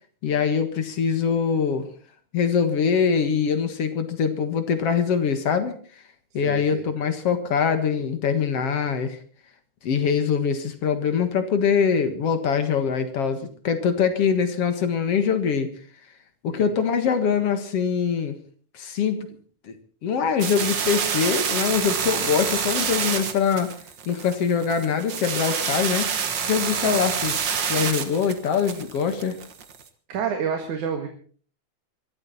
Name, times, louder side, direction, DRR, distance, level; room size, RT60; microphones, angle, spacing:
voice 1, 0.2-1.9 2.3-5.8 6.3-9.2 9.8-15.7 16.4-18.4 18.7-19.3 19.7-19.8 20.0-23.7 24.1-26.1 26.5-27.4 27.7-29.4, left 6 dB, 55° left, 9 dB, 2.4 m, -23 dB
voice 2, 6.4-6.8 16.5-16.8 26.8-27.0 30.1-31.1, right 7 dB, 90° right, 4 dB, 3.2 m, -29 dB
sound 1, 20.4-29.8, right 7 dB, 45° right, 1.8 m, -27 dB
24.0 x 13.0 x 4.2 m, 0.44 s
omnidirectional pair, 3.4 m